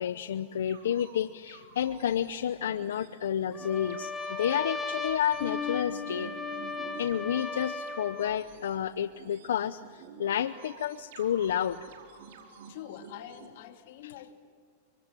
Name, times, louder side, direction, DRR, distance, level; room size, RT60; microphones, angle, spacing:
voice 1, 0.0-6.3 7.0-11.9 14.0-14.1, left 9 dB, 90° left, 12 dB, 0.8 m, -30 dB
sound 1, 0.7-13.5, right 6 dB, 70° right, 4.9 m, -50 dB
Trumpet, 3.5-8.4, left 3 dB, 5° left, 3.8 m, -37 dB
Bass guitar, 5.4-8.1, left 9 dB, 45° left, 3.5 m, -40 dB
voice 2, 12.7-14.3, left 10 dB, 65° left, 5 dB, 2.9 m, -45 dB
29.0 x 25.0 x 7.7 m, 2.1 s
supercardioid pair, 135°, 0 cm